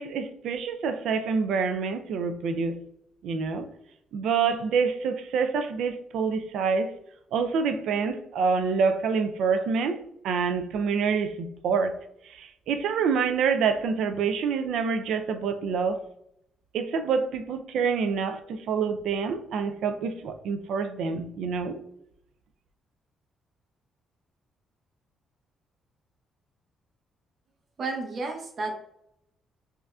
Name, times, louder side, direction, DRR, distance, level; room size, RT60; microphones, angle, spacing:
voice 1, 0.0-2.8 3.2-3.7 4.1-6.9 7.3-12.0 12.2-16.0 16.7-21.8, right 5 dB, 80° right, 0.4 m, -27 dB
voice 2, 27.8-28.7, right 3 dB, 50° right, 0.8 m, -31 dB
5.5 x 2.5 x 2.3 m
cardioid pair, 90°, 0 cm